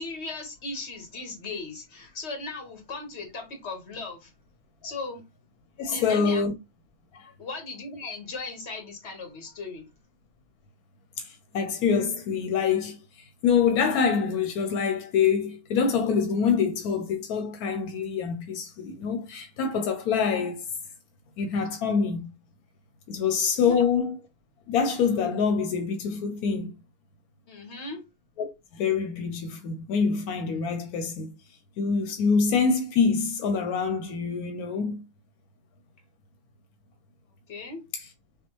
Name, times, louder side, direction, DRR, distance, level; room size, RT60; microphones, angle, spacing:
voice 1, 0.0-4.3 4.8-5.2 5.9-6.4 7.4-9.9 23.7-23.9 27.5-28.0 37.5-37.8, left 3 dB, 50° left, 1.6 m, -37 dB
voice 2, 5.8-6.5 7.1-7.3 11.2-20.6 21.4-22.3 23.1-24.2 24.7-26.7 28.4-28.5 28.7-31.3 31.8-35.0, left 6 dB, 80° left, 1.1 m, -25 dB
5.9 x 2.3 x 3.0 m
omnidirectional pair, 1.5 m